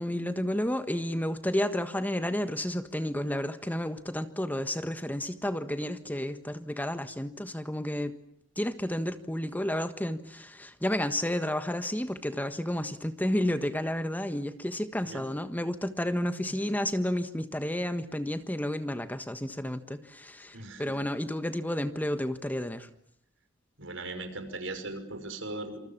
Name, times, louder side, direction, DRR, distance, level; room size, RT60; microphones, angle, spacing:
voice 1, 0.0-8.2 8.6-22.9, left 1 dB, 10° left, 1.4 m, -31 dB
voice 2, 20.5-21.0 23.8-25.9, right 2 dB, 75° right, 5.9 m, -39 dB
27.5 x 27.5 x 7.4 m
head